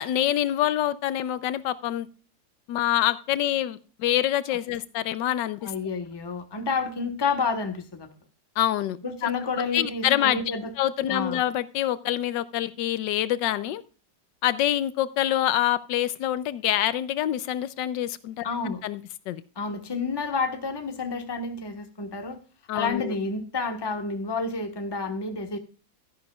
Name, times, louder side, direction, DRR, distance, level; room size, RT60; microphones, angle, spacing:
voice 1, 0.0-2.1 2.7-5.7 8.6-9.0 9.2-9.3 9.6-10.4 10.8-13.8 14.4-19.0 19.3-19.4 22.7-23.1, left 12 dB, 75° left, 1.3 m, -26 dB
voice 2, 5.6-8.1 9.0-10.7 11.1-11.4 18.4-18.8 19.6-22.4 22.7-25.6, left 4 dB, 15° left, 1.0 m, -30 dB
13.0 x 10.5 x 2.3 m
omnidirectional pair, 2.1 m